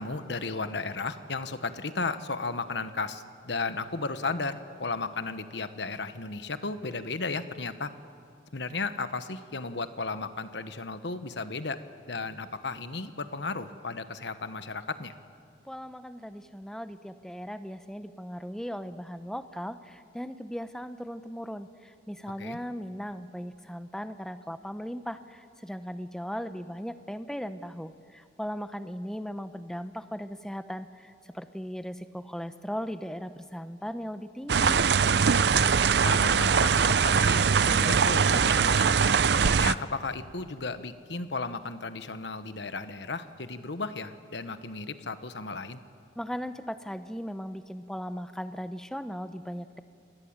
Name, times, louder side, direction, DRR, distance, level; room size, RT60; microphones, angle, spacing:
voice 1, 0.0-7.9 8.5-11.8 12.1-15.1 22.4-22.6 35.5-39.0 39.4-45.8, left 3 dB, 70° left, 11 dB, 1.2 m, -34 dB
voice 2, 15.7-34.8 46.2-49.8, equal, 5° left, 10 dB, 0.8 m, -38 dB
sound 1, 34.5-39.7, right 6 dB, 65° right, 0.5 m, -22 dB
28.5 x 20.0 x 8.9 m, 2.3 s
head